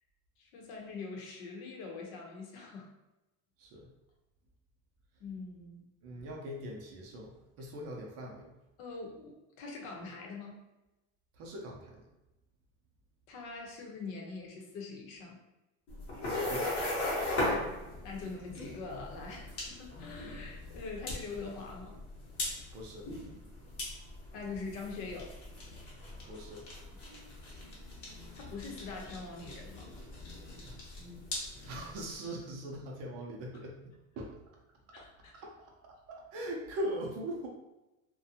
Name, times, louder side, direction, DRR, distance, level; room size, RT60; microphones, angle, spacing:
voice 1, 0.4-2.9 5.2-5.9 7.6-7.7 8.8-10.6 13.3-15.4 18.0-22.0 24.3-25.3 28.3-29.9 34.9-35.3, left 4 dB, 85° left, 0 dB, 0.8 m, -43 dB
voice 2, 6.0-8.5 11.4-12.1 16.5-16.7 22.7-23.1 26.2-26.7 31.6-34.4 35.3-35.5 35.8-37.5, right 1 dB, 40° right, 0 dB, 0.4 m, -41 dB
sound 1, 15.9-32.1, left 1 dB, 35° left, 0.8 m, -39 dB
2.5 x 2.2 x 2.7 m, 0.99 s
cardioid pair, 160°, 41 cm